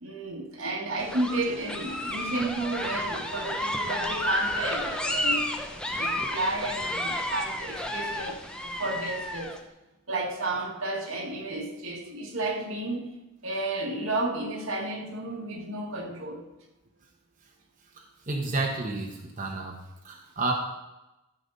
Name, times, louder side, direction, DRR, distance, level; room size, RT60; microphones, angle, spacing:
voice 1, 0.0-9.6 10.1-13.1 13.4-16.4, right 2 dB, 75° right, 1 dB, 1.9 m, -32 dB
sound 1, 1.0-9.6, left 1 dB, 5° left, 0.7 m, -31 dB
voice 2, 18.0-19.8 20.0-20.5, right 3 dB, 40° right, 0 dB, 1.1 m, -31 dB
13.0 x 7.0 x 4.0 m, 0.97 s
head